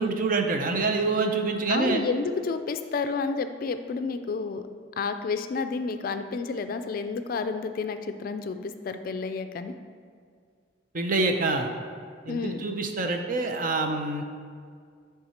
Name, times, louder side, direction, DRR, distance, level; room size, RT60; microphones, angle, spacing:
voice 1, 0.0-2.0 10.9-11.7 12.3-14.2, right 3 dB, 50° right, 5 dB, 0.6 m, -26 dB
voice 2, 1.7-4.6 5.0-9.7 12.3-12.7, left 4 dB, 50° left, 9 dB, 0.3 m, -30 dB
8.5 x 3.6 x 4.3 m, 2.1 s
head